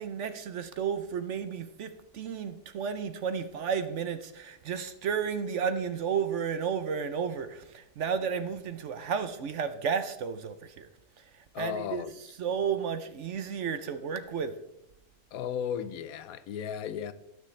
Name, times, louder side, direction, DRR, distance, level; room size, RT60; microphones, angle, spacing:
voice 1, 0.0-10.9 11.6-12.0 12.4-14.6, right 6 dB, 60° right, 0.9 m, -32 dB
voice 2, 11.5-12.1 15.3-17.1, left 8 dB, 75° left, 1.1 m, -35 dB
19.0 x 6.4 x 3.2 m
omnidirectional pair, 1.5 m